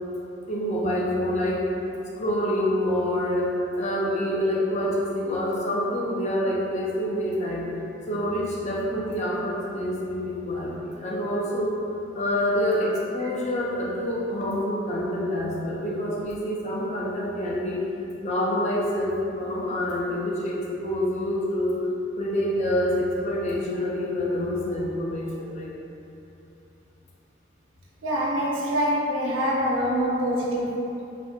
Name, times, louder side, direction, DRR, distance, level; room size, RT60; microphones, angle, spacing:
voice 1, 0.5-1.6 2.2-7.7 8.1-11.8 12.1-17.8 18.2-21.8 22.2-25.7, left 1 dB, 35° left, -4 dB, 0.3 m, -27 dB
voice 2, 28.0-30.9, equal, 85° right, -4 dB, 0.4 m, -25 dB
2.4 x 2.1 x 2.5 m, 2.8 s
head